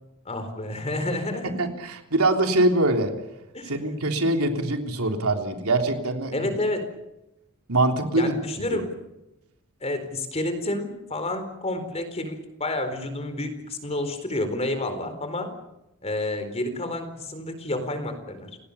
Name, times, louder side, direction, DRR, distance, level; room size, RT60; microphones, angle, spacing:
voice 1, 0.2-1.7 3.5-3.7 6.3-6.9 8.1-8.9 9.8-15.5 16.0-18.5, left 1 dB, 30° left, 8 dB, 4.3 m, -29 dB
voice 2, 1.4-3.1 3.7-6.5 7.7-8.4 8.7-8.8, right 2 dB, 85° right, 4 dB, 3.5 m, -23 dB
30.0 x 18.0 x 7.1 m, 0.91 s
head